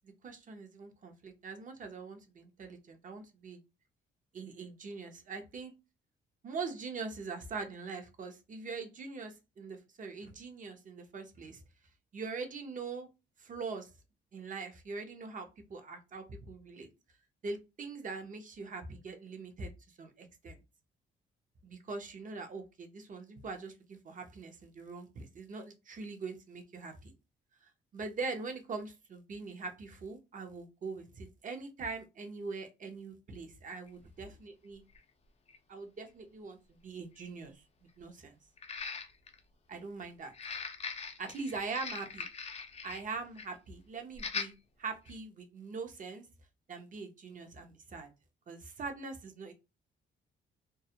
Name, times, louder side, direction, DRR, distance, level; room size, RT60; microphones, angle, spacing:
voice 1, 0.2-3.6 4.3-5.7 6.4-11.6 12.1-13.1 13.4-13.9 14.3-16.9 17.4-19.7 20.0-20.6 21.6-27.1 27.6-34.8 35.7-37.6 38.0-38.4 39.7-40.3 41.3-42.3 42.8-44.5 44.8-46.3 46.7-48.1 48.5-49.5, right 4 dB, 40° right, 6 dB, 0.7 m, -42 dB
sound 1, 33.9-34.0 35.0-35.1 35.5-35.6 38.6-39.4 40.3-43.1 43.4-43.6 44.2-44.5 45.1-45.2, left 5 dB, 30° left, 0.5 m, -41 dB
2.3 x 2.0 x 2.8 m, 0.26 s
cardioid pair, 90°, 20 cm